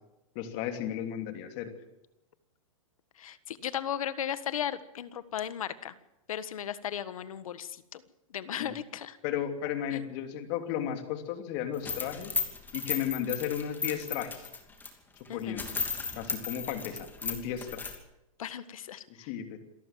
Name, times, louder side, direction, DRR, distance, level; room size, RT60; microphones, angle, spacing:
voice 1, 0.3-1.7 8.6-8.7 9.2-12.3 12.7-14.5 15.3-15.7 16.2-17.9 19.2-19.6, left 10 dB, 40° left, 6 dB, 3.0 m, -34 dB
voice 2, 3.1-5.9 6.3-8.0 8.3-9.2 9.9-10.0 15.3-15.6 18.4-19.3, left 9 dB, 75° left, 14 dB, 1.5 m, -36 dB
sound 1, 11.7-14.9 15.3-15.4 15.6-18.0, left 5 dB, 10° left, 2.8 m, -35 dB
27.0 x 13.5 x 7.6 m, 0.96 s
hypercardioid pair, 140°, 18 cm